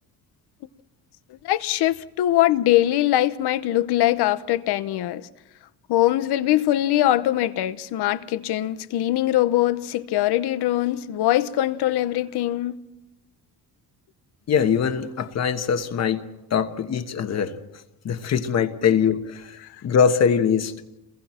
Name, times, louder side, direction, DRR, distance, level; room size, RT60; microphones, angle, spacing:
voice 1, 1.4-5.3 5.9-12.8, left 14 dB, 85° left, 1.0 m, -22 dB
voice 2, 14.5-16.2 16.5-17.6 18.0-20.7, left 7 dB, 40° left, 1.3 m, -22 dB
30.0 x 22.0 x 4.4 m
cardioid pair, 175°, 38 cm